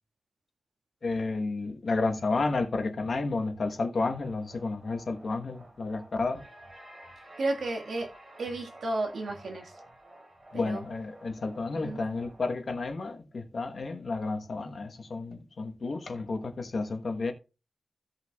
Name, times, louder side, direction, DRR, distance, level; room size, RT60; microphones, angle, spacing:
voice 1, 1.0-6.5 10.5-17.3, left 3 dB, 60° left, 1.1 m, -31 dB
sound 1, 4.1-12.6, right 1 dB, 30° right, 3.0 m, -52 dB
voice 2, 7.4-8.1 8.4-9.7 10.5-10.8 11.7-12.0, right 2 dB, 75° right, 1.7 m, -32 dB
16.0 x 5.6 x 2.3 m
wide cardioid pair, 120°, 0 cm